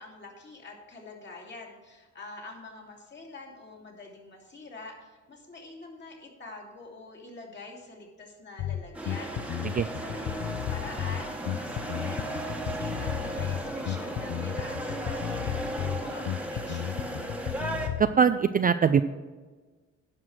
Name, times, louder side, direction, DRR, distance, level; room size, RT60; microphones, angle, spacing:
voice 1, 0.0-17.3, left 2 dB, 35° left, 0 dB, 2.7 m, -46 dB
Bass guitar, 8.6-18.2, left 12 dB, 65° left, 0.5 m, -34 dB
sound 1, 8.9-17.9, right 1 dB, 5° right, 1.3 m, -35 dB
voice 2, 18.0-19.0, right 7 dB, 30° right, 11 dB, 0.4 m, -22 dB
11.0 x 5.9 x 6.4 m, 1.3 s
cardioid pair, 90°, 30 cm